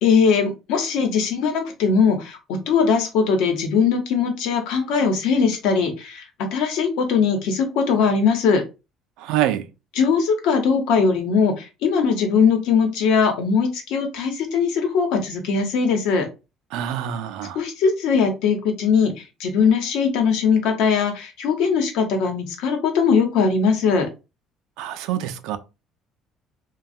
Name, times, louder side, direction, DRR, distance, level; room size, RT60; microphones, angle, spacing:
voice 1, 0.0-8.6 10.0-16.2 17.5-24.1, left 5 dB, 80° left, 0.9 m, -20 dB
voice 2, 9.2-9.7 16.7-17.6 24.8-25.6, right 11 dB, 80° right, 0.4 m, -25 dB
3.2 x 2.2 x 2.6 m
cardioid pair, 170°, 0 cm